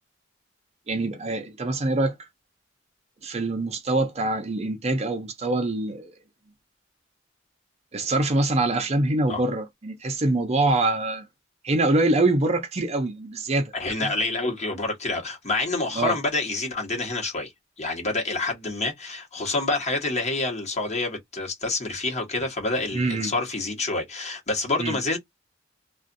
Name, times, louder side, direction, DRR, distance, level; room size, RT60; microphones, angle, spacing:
voice 1, 0.9-2.3 3.2-6.2 7.9-11.3 11.6-13.7 14.0-14.1 15.9-16.2 22.9-23.3 24.8-25.0, right 2 dB, 35° right, 0.6 m, -24 dB
voice 2, 13.7-17.5 17.8-25.2, left 3 dB, 35° left, 1.2 m, -27 dB
2.4 x 2.4 x 2.5 m
head